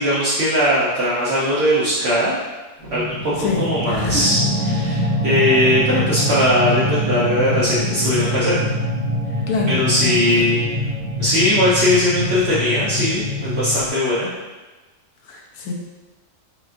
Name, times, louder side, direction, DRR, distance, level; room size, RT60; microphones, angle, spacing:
voice 1, 0.0-2.4 2.9-4.4 4.6-8.7 9.7-10.7 11.2-14.3, left 1 dB, 55° right, -9 dB, 0.9 m, -19 dB
sound 1, 2.8-13.9, left 1 dB, 25° left, 1.0 m, -24 dB
voice 2, 3.4-4.3 9.5-10.6 15.2-15.7, left 3 dB, 80° left, -1 dB, 1.1 m, -26 dB
5.0 x 2.4 x 2.5 m, 1.2 s
omnidirectional pair, 1.5 m